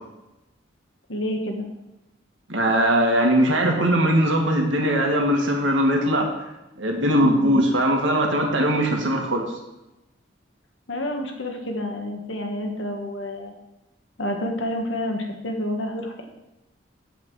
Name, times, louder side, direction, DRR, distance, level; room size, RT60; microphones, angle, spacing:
voice 1, 1.1-1.7 7.1-7.6 10.9-13.5 14.2-16.2, left 1 dB, 85° left, 3 dB, 1.6 m, -29 dB
voice 2, 2.5-6.3 6.8-9.4, equal, 80° right, 1 dB, 2.0 m, -20 dB
8.1 x 8.0 x 4.9 m, 0.96 s
head